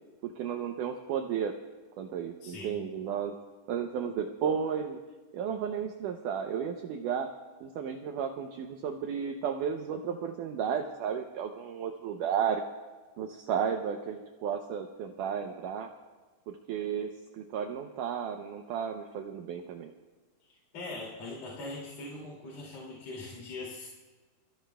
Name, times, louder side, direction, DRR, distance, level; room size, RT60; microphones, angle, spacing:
voice 1, 0.2-1.5 2.0-3.3 3.7-5.0 5.3-7.3 7.6-12.6 13.2-15.9 16.5-19.9, right 7 dB, 85° right, 5 dB, 1.8 m, -33 dB
voice 2, 2.4-2.7 20.7-23.9, left 2 dB, 45° left, -5 dB, 3.3 m, -41 dB
26.5 x 15.0 x 2.3 m, 1.4 s
omnidirectional pair, 4.6 m